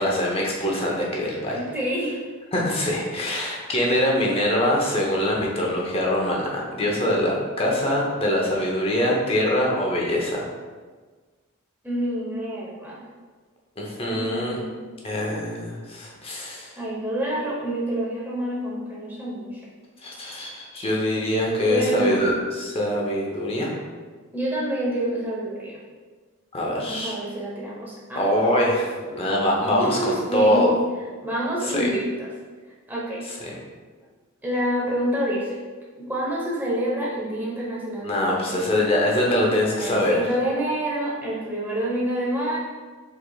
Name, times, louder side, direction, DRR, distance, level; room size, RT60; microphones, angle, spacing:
voice 1, 0.0-1.6 2.5-10.5 13.8-14.6 15.0-16.7 20.0-23.7 26.5-27.1 28.1-30.7 31.6-31.9 33.4-33.5 38.0-40.2, left 1 dB, 25° left, -2 dB, 0.8 m, -23 dB
voice 2, 1.5-2.2 11.8-13.0 14.1-14.8 16.8-19.6 21.7-22.2 24.3-25.8 26.8-28.2 29.7-30.6 31.2-32.3 32.9-33.2 34.4-35.6 35.9-38.6 39.8-42.6, right 1 dB, 10° right, -5 dB, 0.9 m, -27 dB
4.8 x 4.0 x 2.3 m, 1.4 s
head